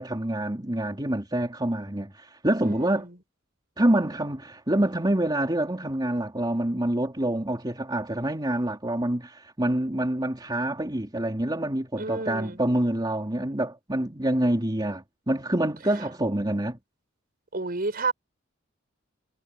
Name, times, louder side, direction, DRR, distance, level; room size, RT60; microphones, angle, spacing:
voice 1, 0.0-3.1 3.8-16.8, right 1 dB, 20° right, 3.1 m, -26 dB
voice 2, 2.6-3.0 12.0-12.6 17.5-18.1, right 3 dB, 45° right, 5.5 m, -30 dB
head